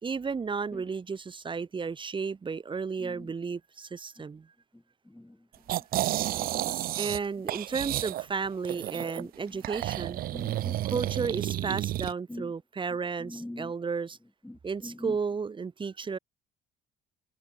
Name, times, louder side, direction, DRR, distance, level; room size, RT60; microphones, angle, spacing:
voice 1, 0.0-4.5 7.0-10.2 10.8-14.2 14.6-16.2, right 5 dB, 30° right, 4.3 m, -33 dB
sound 1, 5.7-7.2 7.5-9.2 9.6-12.1, right 14 dB, 60° right, 0.6 m, -31 dB
voice 2, 6.1-6.8 9.0-9.3 10.3-10.8 12.3-12.5 13.2-13.7 14.4-15.2, left 1 dB, 5° left, 3.4 m, -43 dB
cardioid pair, 110°, 17 cm